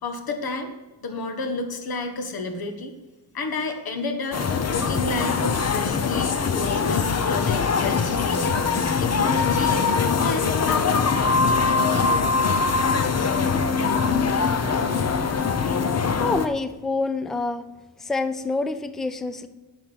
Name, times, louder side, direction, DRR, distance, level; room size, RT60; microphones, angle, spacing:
voice 1, 0.0-0.7 1.0-2.9 3.3-8.3 9.0-9.9 10.2-11.7, left 3 dB, 50° left, 6 dB, 1.5 m, -31 dB
sound 1, 4.3-16.5, left 5 dB, 35° left, 0.7 m, -22 dB
voice 2, 16.2-17.6 18.0-19.5, left 3 dB, ahead, 11 dB, 0.4 m, -27 dB
10.5 x 6.3 x 6.3 m, 1.2 s
wide cardioid pair, 180°, 46 cm